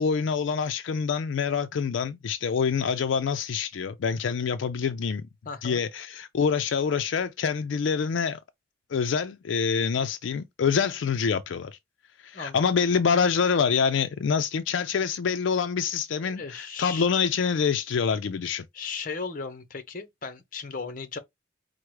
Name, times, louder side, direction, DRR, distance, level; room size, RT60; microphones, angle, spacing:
voice 1, 0.0-5.3 5.6-8.4 8.9-11.8 12.2-18.6, left 6 dB, 75° left, 0.4 m, -26 dB
voice 2, 5.5-5.8 12.3-12.7 16.2-17.1 18.7-21.2, left 4 dB, 45° left, 0.8 m, -36 dB
4.6 x 2.1 x 4.7 m
head